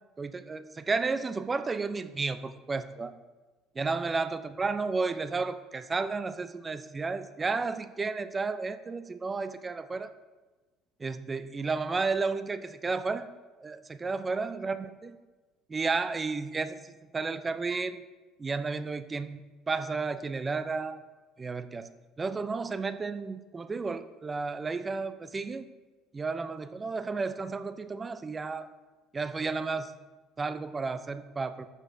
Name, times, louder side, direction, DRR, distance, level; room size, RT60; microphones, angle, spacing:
voice 1, 0.2-3.1 3.8-10.1 11.0-13.3 13.6-14.8 15.0-15.2 15.7-16.8 17.1-18.0 18.4-19.4 19.7-21.0 21.4-21.9 22.2-25.7 26.1-28.7 29.1-29.9 30.4-31.7, right 4 dB, 25° right, 11 dB, 0.4 m, -32 dB
10.5 x 6.6 x 2.6 m, 1.2 s
supercardioid pair, 100°, 0 cm